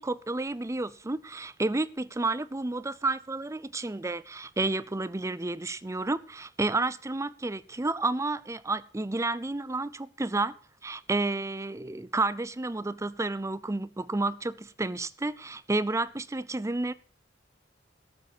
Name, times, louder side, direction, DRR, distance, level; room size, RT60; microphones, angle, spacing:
voice 1, 0.0-10.6 10.8-16.9, right 2 dB, 15° right, 0.5 m, -31 dB
13.5 x 7.4 x 6.8 m
head